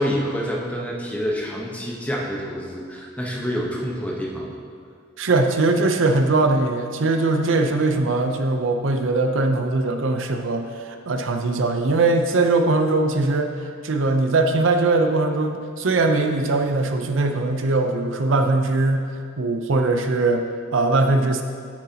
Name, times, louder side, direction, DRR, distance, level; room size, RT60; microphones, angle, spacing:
voice 1, 0.0-4.5, equal, 5° left, -2 dB, 1.0 m, -27 dB
voice 2, 5.2-13.5 13.8-20.4 20.7-21.4, right 2 dB, 75° right, 6 dB, 0.6 m, -21 dB
9.7 x 8.8 x 2.9 m, 2.2 s
head